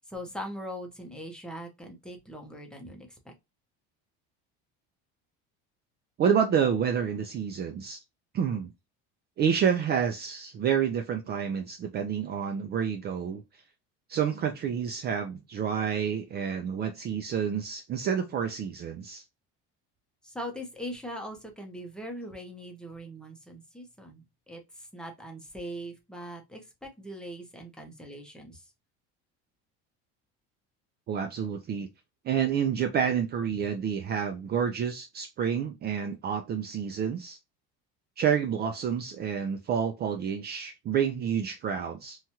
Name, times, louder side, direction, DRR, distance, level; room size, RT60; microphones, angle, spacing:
voice 1, 0.0-3.3 20.2-28.7, equal, 5° left, 0.7 m, -41 dB
voice 2, 6.2-8.0 8.3-8.7 9.4-13.4 14.1-19.2 31.1-31.9 32.2-37.4 38.2-42.2, right 7 dB, 35° right, 0.4 m, -29 dB
3.0 x 2.3 x 2.7 m
cardioid pair, 130°, 30 cm